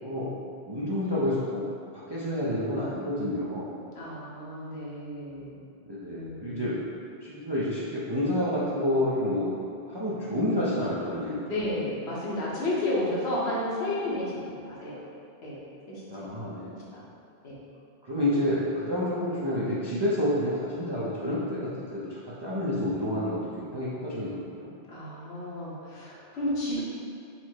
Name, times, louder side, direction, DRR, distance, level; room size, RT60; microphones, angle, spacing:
voice 1, 0.7-1.6 1.9-3.7 5.9-6.8 7.2-9.5 9.8-11.5 16.1-16.8 18.0-24.7, left 1 dB, 40° right, -9 dB, 0.4 m, -29 dB
voice 2, 3.9-5.6 6.1-6.7 11.5-14.3 14.7-14.9 15.4-15.6 15.9-16.2 16.9-17.0 17.4-17.6 24.9-26.8, left 1 dB, 65° left, -7 dB, 1.2 m, -32 dB
4.2 x 2.0 x 4.5 m, 2.5 s
omnidirectional pair, 1.2 m